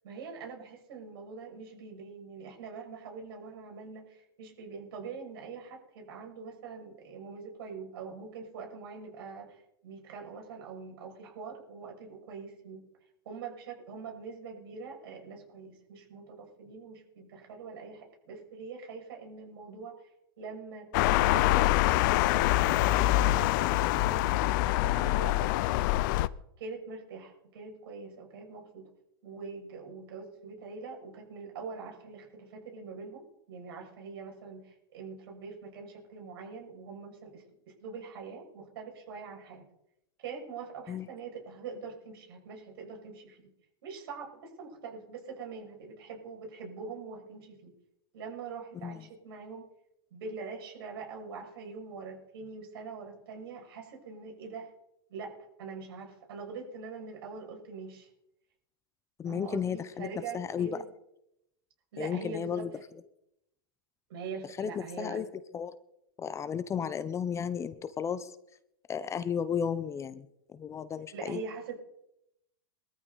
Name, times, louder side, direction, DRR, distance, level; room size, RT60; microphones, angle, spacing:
voice 1, 0.0-12.9 13.2-20.1 20.4-20.9 21.2-26.0 26.6-28.9 29.2-39.6 40.2-43.5 43.8-47.7 48.1-49.6 50.1-54.7 55.1-58.1 59.2-60.8 61.9-62.8 64.1-65.2 66.8-66.9 71.1-71.8, right 5 dB, 70° right, 1 dB, 6.5 m, -43 dB
sound 1, 20.9-26.3, left 17 dB, 55° left, 0.6 m, -25 dB
voice 2, 59.2-60.1 60.3-60.8 62.0-62.7 64.6-65.3 65.5-65.8 66.2-68.3 68.9-71.4, left 7 dB, 20° left, 14 dB, 0.8 m, -33 dB
22.5 x 13.5 x 4.1 m, 0.81 s
hypercardioid pair, 115°, 13 cm